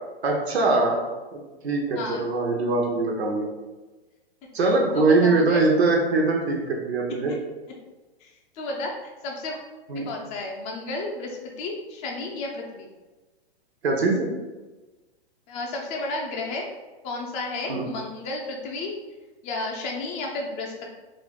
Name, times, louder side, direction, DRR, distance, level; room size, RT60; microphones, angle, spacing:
voice 1, 0.2-1.0 1.3-3.5 4.5-7.3 9.9-10.1 13.8-14.2 17.7-17.9, right 3 dB, 85° right, 0 dB, 0.7 m, -22 dB
voice 2, 2.0-2.3 4.9-5.6 8.2-9.6 10.1-12.9 15.5-16.7 17.0-18.9 19.4-20.8, left 2 dB, 25° left, 0 dB, 0.4 m, -32 dB
2.5 x 2.2 x 3.5 m, 1.2 s
hypercardioid pair, 130°, 31 cm